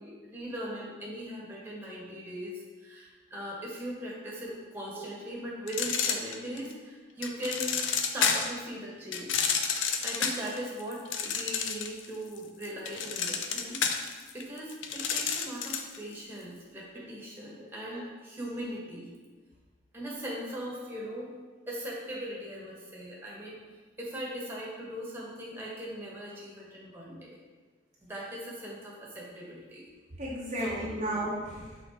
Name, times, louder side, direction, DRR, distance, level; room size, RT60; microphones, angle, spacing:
voice 1, 0.0-7.6 7.9-9.5 10.0-19.1 19.9-21.3 21.7-23.6 24.0-27.4 28.0-29.8 30.6-30.9, equal, 10° right, -5 dB, 1.3 m, -39 dB
sound 1, 5.7-6.7 7.2-8.6 9.1-12.1 12.4-16.0, left 6 dB, 85° left, 0.5 m, -30 dB
voice 2, 17.6-18.0 30.2-31.8, right 1 dB, 35° right, -6 dB, 0.9 m, -34 dB
6.1 x 4.0 x 4.1 m, 1.3 s
head